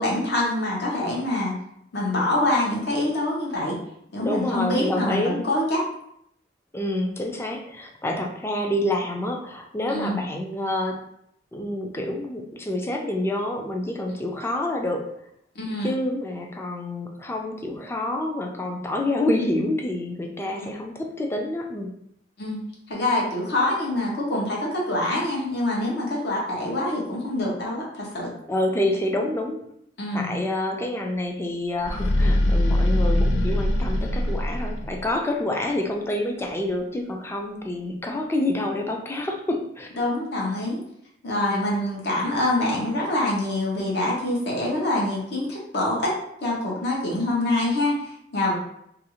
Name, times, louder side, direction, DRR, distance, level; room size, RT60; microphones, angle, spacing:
voice 1, 0.0-1.6 1.9-3.8 4.1-5.8 9.9-10.2 14.1-14.3 15.6-15.9 20.4-20.7 22.4-28.3 30.0-30.4 40.0-40.8 41.2-46.1 46.4-48.5, left 1 dB, 65° left, -4 dB, 0.8 m, -25 dB
voice 2, 4.2-5.4 6.7-11.0 11.5-15.0 15.8-21.9 28.5-29.6 30.1-39.9 41.4-41.7, left 1 dB, 15° left, 2 dB, 0.3 m, -27 dB
sound 1, 31.8-35.1, left 1 dB, 85° left, 0.4 m, -22 dB
2.5 x 2.3 x 2.9 m, 0.72 s
head